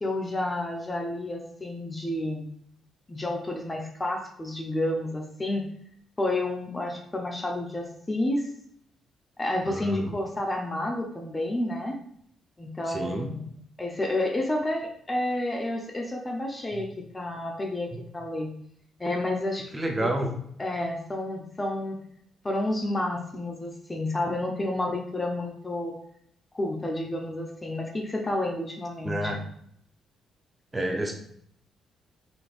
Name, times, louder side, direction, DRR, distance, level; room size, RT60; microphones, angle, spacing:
voice 1, 0.0-2.5 3.1-5.6 6.2-8.5 9.4-12.0 12.6-13.5 13.8-18.5 19.0-19.7 20.0-20.1 20.6-22.0 22.4-26.0 26.5-29.4, left 1 dB, 20° left, 2 dB, 0.7 m, -30 dB
voice 2, 9.7-10.1 12.9-13.3 19.7-20.3 29.0-29.4 30.7-31.1, right 1 dB, 20° right, 2 dB, 0.7 m, -29 dB
4.0 x 3.2 x 2.5 m, 0.68 s
cardioid pair, 90°, 0 cm